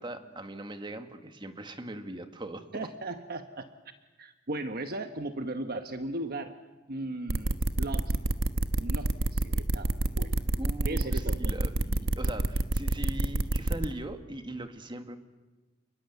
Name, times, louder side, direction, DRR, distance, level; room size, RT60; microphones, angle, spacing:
voice 1, 0.0-2.9 10.6-15.2, right 1 dB, 25° right, 7 dB, 1.8 m, -40 dB
voice 2, 2.7-3.7 4.2-6.5 6.9-8.2 8.8-10.4 10.8-11.5, right 2 dB, 50° right, 7 dB, 1.2 m, -37 dB
sound 1, 7.3-13.9, right 1 dB, 85° right, 1.3 m, -27 dB
29.0 x 21.0 x 8.2 m, 1.2 s
head